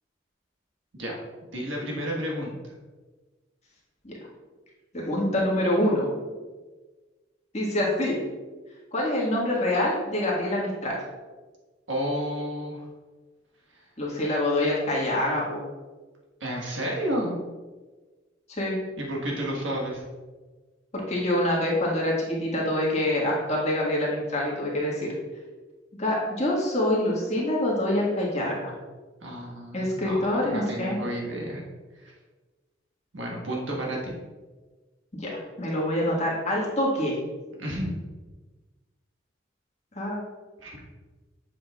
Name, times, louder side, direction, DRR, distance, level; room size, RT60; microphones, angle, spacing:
voice 1, 1.5-2.6 11.9-12.8 16.4-17.3 19.0-20.0 29.2-31.6 33.1-34.1 37.6-37.9 40.6-40.8, equal, 80° right, -2 dB, 1.5 m, -31 dB
voice 2, 4.9-6.1 7.5-8.2 8.9-11.0 14.0-15.6 18.6-18.8 21.1-25.1 26.0-28.7 29.7-31.0 35.1-37.1 39.9-40.2, left 1 dB, 35° left, -5 dB, 1.6 m, -25 dB
7.4 x 5.9 x 2.4 m, 1.3 s
head